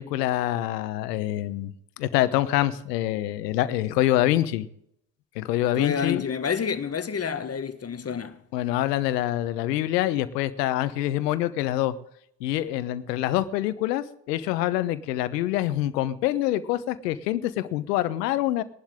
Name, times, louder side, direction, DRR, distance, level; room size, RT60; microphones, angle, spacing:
voice 1, 0.0-1.7 2.0-4.7 5.4-6.2 8.5-11.9 12.4-18.6, left 14 dB, 80° left, 1.1 m, -25 dB
voice 2, 5.8-8.4, left 6 dB, 30° left, 1.5 m, -29 dB
21.5 x 11.5 x 3.7 m
hypercardioid pair, 60°, 48 cm